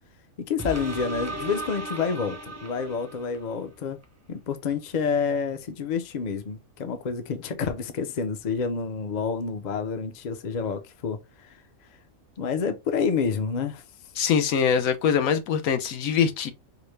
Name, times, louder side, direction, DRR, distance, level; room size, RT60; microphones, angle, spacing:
voice 1, 0.4-4.0 4.3-11.2 12.4-13.8, left 5 dB, 45° left, 0.6 m, -28 dB
sound 1, 0.6-3.5 4.0-4.1, right 2 dB, 25° right, 0.3 m, -35 dB
voice 2, 14.2-16.5, left 7 dB, 85° left, 1.1 m, -23 dB
4.8 x 2.1 x 3.2 m
omnidirectional pair, 1.4 m